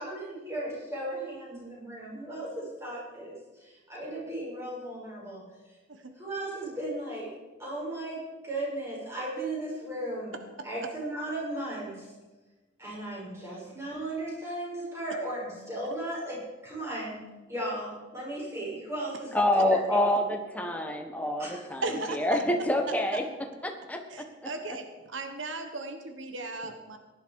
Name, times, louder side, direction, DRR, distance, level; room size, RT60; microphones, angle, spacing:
voice 1, 0.0-3.3 3.6-5.4 6.1-7.3 7.6-10.4 10.6-12.1 12.8-19.4 19.7-20.0 21.4-21.6, right 1 dB, 15° right, -5 dB, 5.8 m, -36 dB
voice 2, 19.3-23.2 23.6-24.0, left 1 dB, 10° left, 4 dB, 1.4 m, -27 dB
voice 3, 21.8-22.2 24.1-24.8 25.1-27.0, right 2 dB, 90° right, 6 dB, 1.4 m, -36 dB
17.0 x 11.0 x 4.9 m, 1.2 s
head